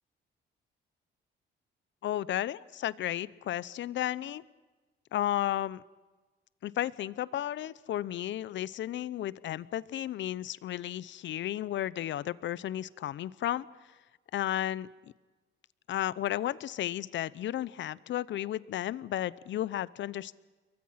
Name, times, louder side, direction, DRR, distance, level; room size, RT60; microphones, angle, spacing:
voice 1, 2.0-4.4 5.1-5.8 6.6-13.7 14.3-14.9 15.9-20.4, left 12 dB, 70° left, 20 dB, 0.8 m, -33 dB
29.0 x 23.0 x 5.8 m, 1.2 s
cardioid pair, 90°, 20 cm